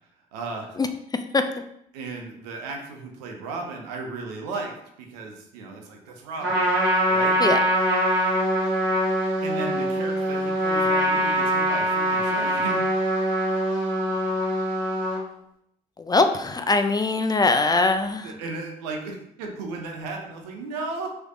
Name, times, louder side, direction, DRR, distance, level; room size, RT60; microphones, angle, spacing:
voice 1, 0.3-0.8 1.9-6.7 7.1-7.4 9.4-12.8 18.2-21.1, right 3 dB, 85° right, 2 dB, 0.6 m, -35 dB
Trumpet, 6.4-15.2, equal, 65° right, 1.3 m, -23 dB
voice 2, 16.0-18.3, left 3 dB, 20° left, 8 dB, 0.3 m, -21 dB
3.2 x 3.1 x 2.5 m, 0.74 s
hypercardioid pair, 55°, 20 cm